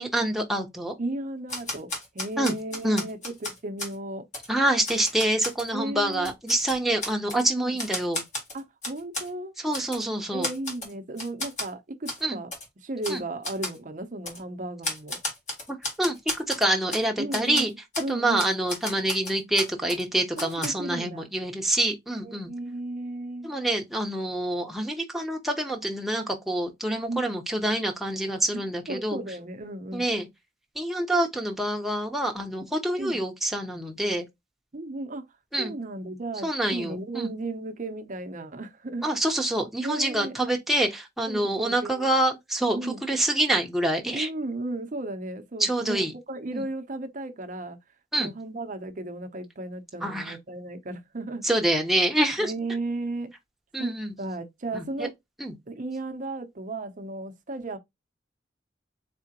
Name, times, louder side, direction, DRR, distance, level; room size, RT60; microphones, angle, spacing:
voice 1, 0.0-0.9 2.4-2.5 2.8-3.0 4.5-8.2 9.6-10.5 12.2-12.4 13.1-13.2 15.7-16.2 16.5-17.7 18.1-22.5 23.4-29.2 29.9-30.3 30.7-34.2 35.5-35.7 36.4-37.3 39.0-44.3 45.6-46.1 46.5-46.6 48.1-48.3 50.0-50.4 51.4-52.5 53.7-54.1 54.7-55.1 55.4-55.5, right 1 dB, ahead, 1.0 m, -26 dB
voice 2, 1.0-4.2 5.7-6.3 7.6-7.8 8.5-9.5 10.3-12.5 12.8-15.2 17.2-18.5 20.4-21.3 22.2-23.5 27.1-27.3 28.9-30.1 33.0-33.2 34.7-35.2 35.6-39.1 39.8-40.4 41.3-42.1 42.7-43.0 44.1-47.8 48.2-51.5 52.4-53.3 53.8-55.1 55.7-57.8, right 2 dB, 45° right, 0.7 m, -35 dB
Typewriter, 1.5-3.9 4.3-4.5 4.8-5.7 6.1-7.4 7.8-9.3 9.7-10.0 10.4-10.9 11.2-11.7 12.0-12.2 12.5-12.6 13.0-13.2 13.4-13.8 14.2-14.4 14.8-17.0 17.3-17.6 17.9-18.1 18.4-20.0 20.4-20.7, left 1 dB, 45° left, 1.9 m, -33 dB
4.2 x 3.6 x 2.9 m
head